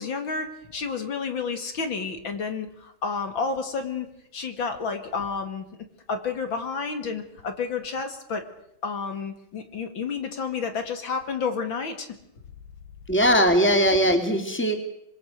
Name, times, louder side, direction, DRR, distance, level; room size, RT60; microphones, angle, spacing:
voice 1, 0.0-5.6 6.1-8.4 8.8-12.1, left 5 dB, 65° left, 6 dB, 2.9 m, -30 dB
voice 2, 13.1-14.8, equal, 5° left, 5 dB, 2.9 m, -20 dB
25.5 x 23.5 x 6.5 m, 0.78 s
omnidirectional pair, 2.3 m